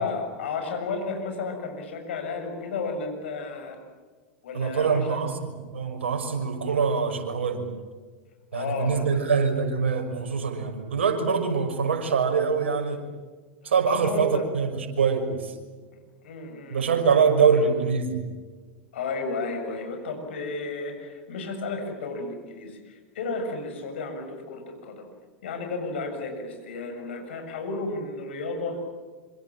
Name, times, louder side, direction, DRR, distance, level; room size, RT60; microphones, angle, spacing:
voice 1, 0.0-3.8 4.4-5.2 8.5-9.2 13.6-14.5 16.2-17.7 18.9-25.0 25.4-28.8, left 3 dB, 70° left, 4 dB, 7.1 m, -33 dB
voice 2, 4.5-7.6 8.5-13.1 13.6-15.5 16.7-18.2, right 6 dB, 75° right, 5 dB, 6.1 m, -24 dB
27.0 x 26.5 x 7.5 m, 1.4 s
hypercardioid pair, 95°, 6 cm